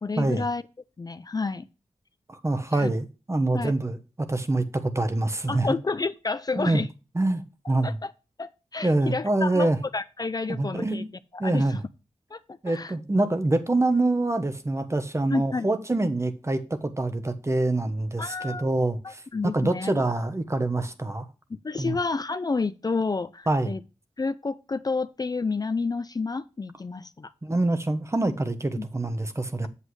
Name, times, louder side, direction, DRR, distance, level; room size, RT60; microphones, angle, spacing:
voice 1, 0.0-0.6 1.0-1.7 2.7-2.9 3.5-3.7 5.5-6.9 7.8-8.1 8.4-11.0 11.3-11.8 12.3-12.9 15.3-15.7 18.2-18.6 19.0-19.9 21.6-23.8 24.2-27.3 28.8-28.9, left 4 dB, 35° left, 0.5 m, -30 dB
voice 2, 2.3-5.8 6.6-6.8 7.1-8.0 8.8-9.8 10.5-11.1 11.4-11.8 12.6-21.3 21.8-22.0 23.5-23.8 27.4-29.7, right 2 dB, 25° right, 1.2 m, -25 dB
8.3 x 7.6 x 3.1 m
wide cardioid pair, 75°, 11 cm